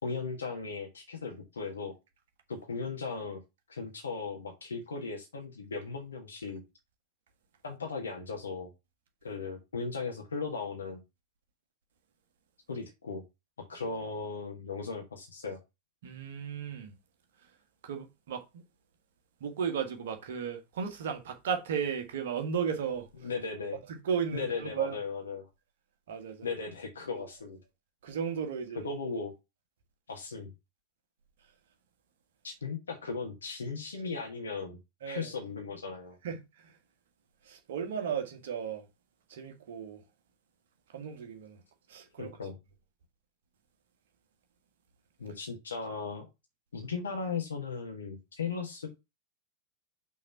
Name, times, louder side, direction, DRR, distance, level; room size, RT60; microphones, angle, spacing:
voice 1, 0.0-1.9 2.5-3.4 3.7-6.6 7.6-8.7 9.2-11.0 12.7-13.2 13.7-15.6 23.2-23.8 24.3-25.5 26.4-27.6 28.8-29.3 30.1-30.5 32.4-34.8 35.0-36.2 42.2-42.6 45.2-46.3 46.7-48.9, left 4 dB, 70° left, 1.5 m, -37 dB
voice 2, 16.0-16.9 17.8-18.4 19.4-23.1 23.9-25.0 26.1-26.5 27.1-27.2 28.0-28.9 35.0-35.3 36.2-36.7 37.4-38.8 39.3-40.0 40.9-41.6 41.9-42.4, right 7 dB, 60° right, 1.6 m, -35 dB
5.8 x 4.1 x 5.5 m
figure-of-eight pair, 90°, 0 cm